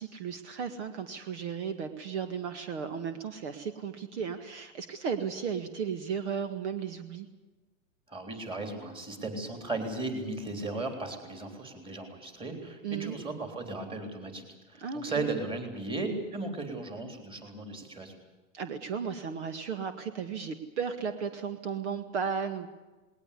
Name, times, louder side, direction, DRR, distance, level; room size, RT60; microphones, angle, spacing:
voice 1, 0.0-7.3 12.8-13.2 14.8-15.3 18.5-22.7, right 6 dB, 55° right, 9 dB, 2.0 m, -35 dB
voice 2, 8.1-18.1, right 2 dB, 15° right, 5 dB, 3.6 m, -36 dB
20.0 x 19.5 x 8.4 m, 1.2 s
hypercardioid pair, 145°, 41 cm